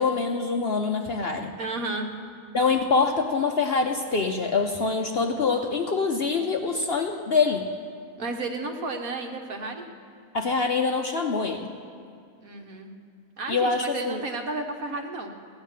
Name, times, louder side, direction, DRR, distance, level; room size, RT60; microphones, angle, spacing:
voice 1, 0.0-1.5 2.5-7.7 10.3-11.7 13.5-14.2, left 4 dB, 50° left, 4 dB, 0.8 m, -25 dB
voice 2, 1.6-2.2 8.2-9.9 12.4-12.9 13.4-15.3, right 3 dB, 65° right, 3 dB, 1.6 m, -32 dB
16.5 x 10.0 x 7.3 m, 2.3 s
omnidirectional pair, 1.7 m